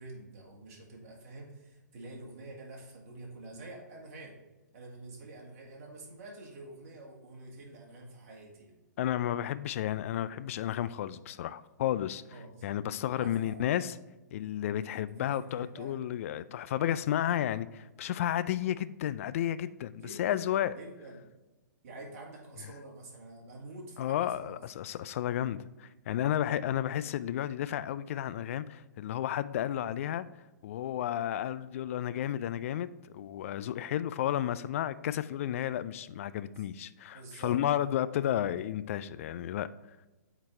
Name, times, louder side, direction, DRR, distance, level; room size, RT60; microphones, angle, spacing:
voice 1, 0.0-4.4 4.7-8.8 12.3-12.5 13.1-13.8 15.2-16.0 20.0-21.2 21.8-24.9 36.6-36.7 37.1-37.6, right 2 dB, 50° right, -1 dB, 2.0 m, -47 dB
voice 2, 9.0-12.2 12.6-13.9 14.3-20.7 24.0-30.3 30.6-39.7, left 11 dB, 45° left, 16 dB, 0.3 m, -32 dB
8.3 x 4.0 x 3.3 m, 1.1 s
figure-of-eight pair, 125°, 10 cm